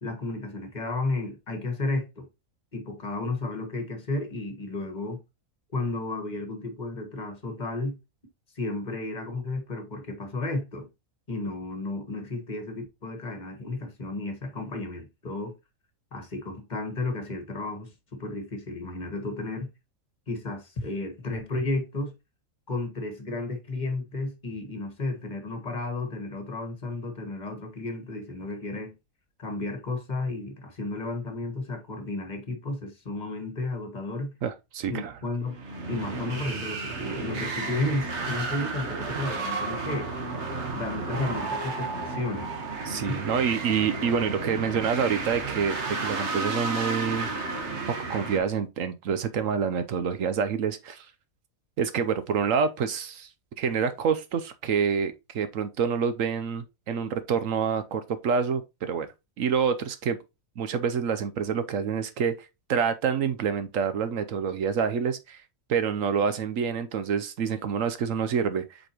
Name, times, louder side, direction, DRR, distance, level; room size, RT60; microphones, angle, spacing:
voice 1, 0.0-2.3 2.7-5.2 5.7-8.0 8.5-10.9 11.3-15.5 16.1-19.7 20.3-22.1 22.7-29.0 29.4-34.3 34.9-35.6 35.9-40.1 40.7-42.6 43.1-43.2, left 2 dB, 30° left, 1.5 m, -33 dB
voice 2, 34.4-35.1 42.9-47.3 47.9-51.1 51.8-53.3 53.6-59.1 59.4-60.2 60.6-62.3 62.7-65.4 65.7-68.8, right 6 dB, 70° right, 1.0 m, -27 dB
sound 1, 35.5-48.4, right 3 dB, 55° right, 1.5 m, -32 dB
7.9 x 4.3 x 2.9 m
omnidirectional pair, 1.5 m